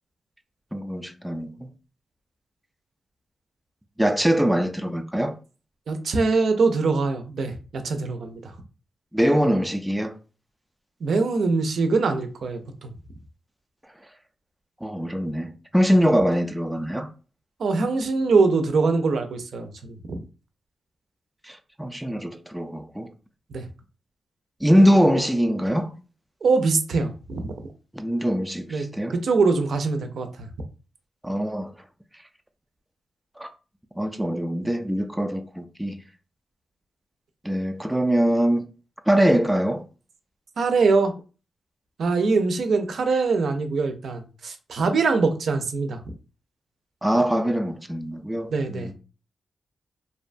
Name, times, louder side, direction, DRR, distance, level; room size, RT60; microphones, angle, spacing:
voice 1, 0.7-1.7 4.0-5.3 9.1-10.2 14.8-17.1 21.4-23.1 24.6-25.9 27.9-29.2 31.2-31.7 33.4-33.5 34.0-36.0 37.4-38.6 39.1-39.8 47.0-48.9, equal, 5° right, 0.3 m, -23 dB
voice 2, 5.9-8.5 11.0-12.9 17.6-20.2 23.5-23.6 26.4-27.5 28.7-28.8 29.1-30.5 40.6-41.1 42.0-46.0 48.5-48.9, right 4 dB, 70° right, 0.4 m, -23 dB
2.7 x 2.2 x 2.5 m
cardioid pair, 90°, 0 cm